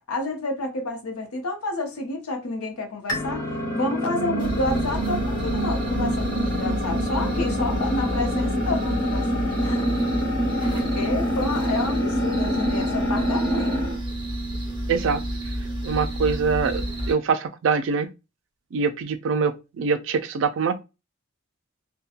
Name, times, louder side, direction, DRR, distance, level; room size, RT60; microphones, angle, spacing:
voice 1, 0.1-9.3 9.6-9.9 10.7-13.8, left 2 dB, 90° left, 0.7 m, -29 dB
sound 1, 3.1-14.0, equal, 20° left, 1.2 m, -26 dB
sound 2, 4.4-17.1, right 1 dB, 20° right, 0.8 m, -30 dB
voice 2, 14.9-15.2 15.8-18.1 18.7-20.8, right 5 dB, 60° right, 0.3 m, -24 dB
2.8 x 2.2 x 2.4 m
head